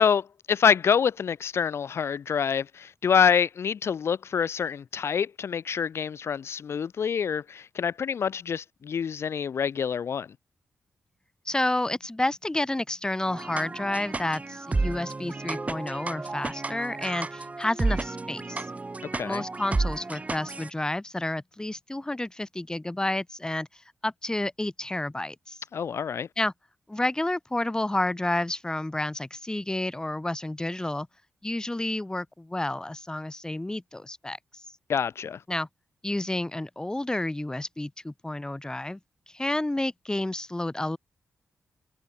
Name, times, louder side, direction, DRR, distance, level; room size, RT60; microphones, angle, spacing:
voice 1, 0.0-10.3 19.1-19.4 25.7-26.3 34.9-35.4, left 7 dB, 65° left, 0.8 m, -26 dB
voice 2, 11.5-18.7 19.2-23.7 24.0-25.6 26.4-26.5 26.9-31.1 31.4-34.4 35.5-35.7 36.0-39.0 39.3-41.0, left 1 dB, 15° left, 1.9 m, -30 dB
sound 1, 13.3-20.7, right 3 dB, 30° right, 1.0 m, -32 dB
cardioid pair, 55°, 5 cm